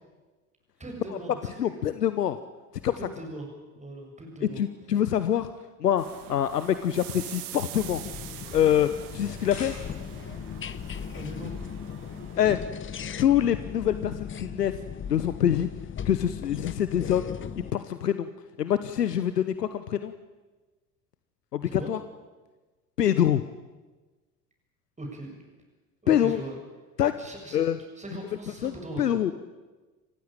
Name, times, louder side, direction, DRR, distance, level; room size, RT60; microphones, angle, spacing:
voice 1, 0.8-1.7 3.0-3.5 3.8-4.6 11.1-11.6 21.7-21.9 25.0-25.4 26.0-26.6 27.2-27.6 28.0-29.2, right 1 dB, 15° right, 2 dB, 7.4 m, -40 dB
voice 2, 1.6-2.4 2.8-2.9 4.6-5.5 5.8-6.0 6.3-8.0 8.5-9.7 12.3-12.6 13.2-14.7 15.1-15.7 16.0-17.3 17.7-18.3 18.6-20.1 21.5-22.0 23.0-23.4 26.1-26.4 27.0-27.1 27.5-27.8 28.6-29.3, left 10 dB, 85° left, 12 dB, 1.0 m, -25 dB
sound 1, 6.0-12.4, right 14 dB, 65° right, 1.6 m, -44 dB
sound 2, 7.7-17.7, left 8 dB, 25° left, 1.0 m, -38 dB
sound 3, 9.2-10.3, left 4 dB, 70° left, 7.6 m, -43 dB
29.0 x 15.5 x 9.0 m, 1.3 s
figure-of-eight pair, 70°, 47 cm